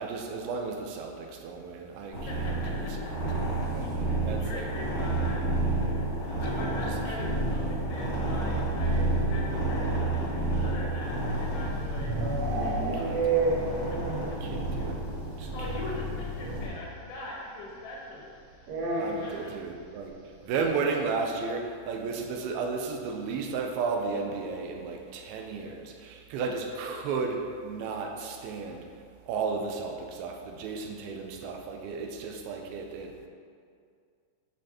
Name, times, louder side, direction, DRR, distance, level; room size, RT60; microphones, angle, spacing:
voice 1, 0.0-2.5 3.4-4.6 6.5-6.7 13.0-13.5 14.4-15.0 15.4-15.5 19.0-20.1 20.4-28.8 29.3-33.3, right 4 dB, 85° right, 3 dB, 2.6 m, -34 dB
sound 1, 2.1-16.7, right 1 dB, 45° right, 0.9 m, -30 dB
voice 2, 2.3-12.2 12.6-13.4 13.7-14.4 14.7-14.9 15.3-18.7 19.0-19.6, left 1 dB, 75° left, -3 dB, 3.1 m, -42 dB
sound 2, 11.4-14.4 14.7-14.8 15.1-15.2 15.5-15.6 16.8-16.9 18.6-19.5, right 3 dB, 60° right, 1.8 m, -30 dB
10.5 x 5.3 x 2.9 m, 2.2 s
omnidirectional pair, 4.4 m